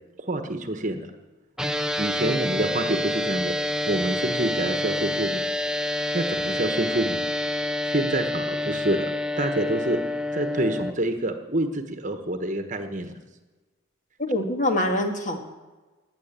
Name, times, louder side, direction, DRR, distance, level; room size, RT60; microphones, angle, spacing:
voice 1, 0.2-1.1 2.0-3.6 3.9-5.4 6.1-7.2 7.9-9.1 9.4-10.0 10.3-13.1, right 1 dB, 35° right, 7 dB, 1.3 m, -27 dB
sound 1, 1.6-10.9, left 1 dB, 5° right, 0.5 m, -27 dB
voice 2, 14.2-15.4, left 1 dB, 35° left, 4 dB, 1.9 m, -24 dB
16.0 x 10.5 x 8.8 m, 1.2 s
head